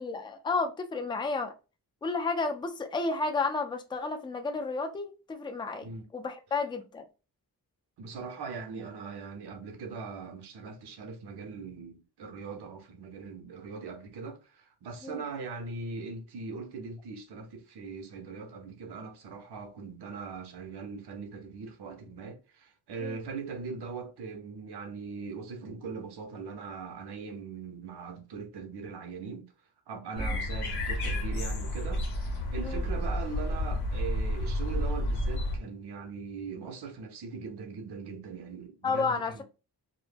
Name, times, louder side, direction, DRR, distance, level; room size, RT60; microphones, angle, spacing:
voice 1, 0.0-1.5 2.0-5.9 6.1-7.1 15.0-15.2 23.0-23.2 30.2-30.4 32.6-32.8 38.8-39.4, left 4 dB, 15° left, 0.3 m, -32 dB
voice 2, 8.0-29.5 29.9-39.4, right 4 dB, 90° right, 0.7 m, -40 dB
sound 1, 30.1-35.6, left 1 dB, 80° left, 0.8 m, -31 dB
2.1 x 2.1 x 3.2 m
wide cardioid pair, 100°, 38 cm